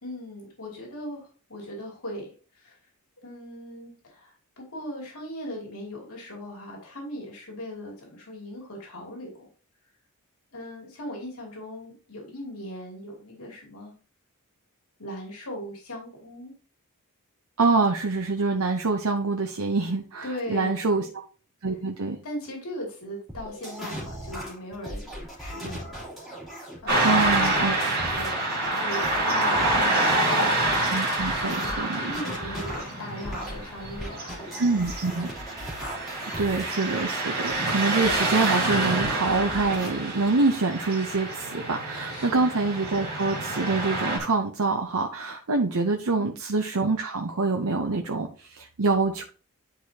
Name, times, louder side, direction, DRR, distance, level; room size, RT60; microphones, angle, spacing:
voice 1, 0.0-2.3 2.5-2.8 3.2-9.5 10.5-13.9 15.0-16.5 20.2-21.1 22.2-26.1 26.8-31.0 31.4-31.8 32.0-35.3 36.4-36.6 42.1-42.4 46.1-46.4, left 1 dB, 85° left, -1 dB, 2.7 m, -39 dB
voice 2, 17.6-21.2 21.6-22.2 27.0-27.7 30.9-32.1 32.4-32.6 34.6-35.3 36.3-49.2, right 3 dB, 80° right, 3 dB, 0.8 m, -25 dB
sound 1, 23.3-30.2 30.6-38.6 39.0-39.9, equal, ahead, 3.0 m, -38 dB
Car passing by / Traffic noise roadway noise, 26.9-44.2, right 2 dB, 45° right, 2.7 m, -27 dB
10.0 x 4.8 x 2.8 m, 0.37 s
head